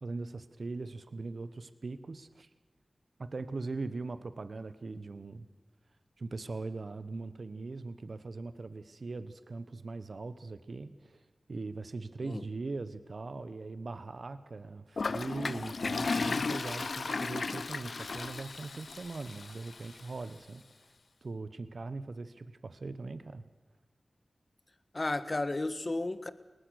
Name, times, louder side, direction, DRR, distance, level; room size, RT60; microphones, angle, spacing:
voice 1, 0.0-2.5 3.2-5.5 6.2-11.2 11.5-20.9 21.2-23.4, right 3 dB, 70° right, 13 dB, 1.0 m, -40 dB
Toilet flush, 15.0-20.0, left 4 dB, 75° left, 0.7 m, -35 dB
voice 2, 24.9-26.3, left 2 dB, 45° left, 13 dB, 1.5 m, -33 dB
22.0 x 19.0 x 6.4 m, 1.3 s
cardioid pair, 40°, 0 cm